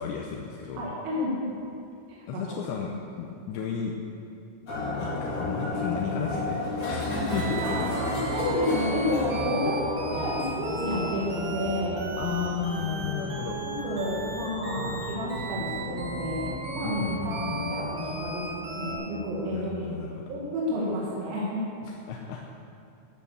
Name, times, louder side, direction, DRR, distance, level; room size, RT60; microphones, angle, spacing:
voice 1, 0.0-0.8 2.3-3.9 5.0-7.9 12.2-13.6 14.8-15.0 16.8-17.8 19.4-20.3 21.8-22.4, left 7 dB, 80° left, 0 dB, 2.7 m, -34 dB
voice 2, 0.8-1.4 2.1-2.6 7.1-7.2 7.5-12.1 13.6-18.4 18.7-19.9 20.3-21.6, left 1 dB, 90° right, -5 dB, 4.9 m, -30 dB
sound 1, 4.7-17.9, left 2 dB, 40° left, 4.5 m, -35 dB
sound 2, 7.3-18.9, right 2 dB, 55° right, 3.0 m, -35 dB
14.0 x 8.5 x 6.7 m, 2.5 s
omnidirectional pair, 6.0 m